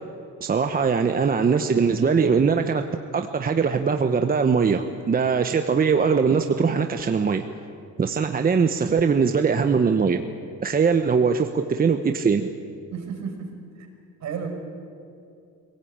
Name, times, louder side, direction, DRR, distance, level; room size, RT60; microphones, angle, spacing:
voice 1, 0.4-2.8 3.1-7.4 8.0-10.2 10.6-12.5, right 5 dB, 25° right, 6 dB, 0.9 m, -21 dB
voice 2, 12.9-13.5 13.8-13.9 14.2-14.5, right 7 dB, 55° right, 3 dB, 5.2 m, -32 dB
24.5 x 17.5 x 8.8 m, 2.5 s
cardioid pair, 125°, 33 cm